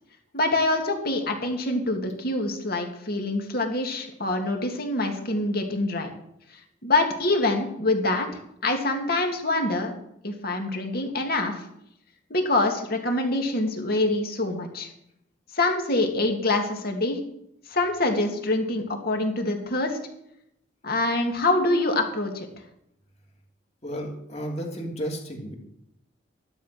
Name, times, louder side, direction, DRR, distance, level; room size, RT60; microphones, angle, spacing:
voice 1, 0.3-6.1 6.5-9.9 10.2-11.7 12.3-14.9 15.5-17.2 17.7-20.0 20.8-22.5, left 2 dB, 50° left, 3 dB, 2.6 m, -25 dB
voice 2, 23.8-25.5, equal, 30° left, 1 dB, 3.2 m, -33 dB
13.5 x 12.0 x 6.1 m, 0.76 s
head